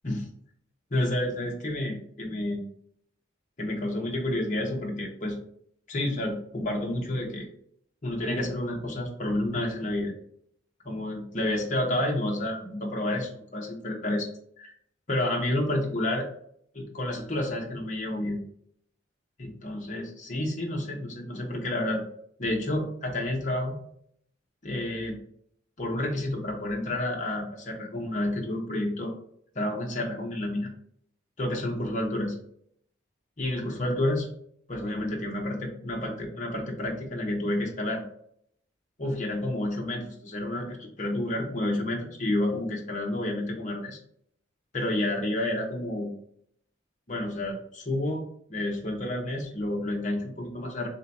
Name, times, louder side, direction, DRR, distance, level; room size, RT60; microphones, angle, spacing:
voice 1, 0.9-2.6 3.6-5.4 5.9-7.5 8.0-10.1 10.8-14.3 14.6-14.7 15.1-16.3 16.7-18.4 19.4-22.0 22.4-23.8 24.6-25.2 25.8-29.1 29.5-30.7 31.4-32.4 33.4-34.3 34.7-38.0 39.0-44.0 44.7-46.1 47.1-48.2 48.5-50.9, left 1 dB, 40° left, 0 dB, 0.9 m, -30 dB
3.4 x 2.9 x 4.1 m, 0.66 s
head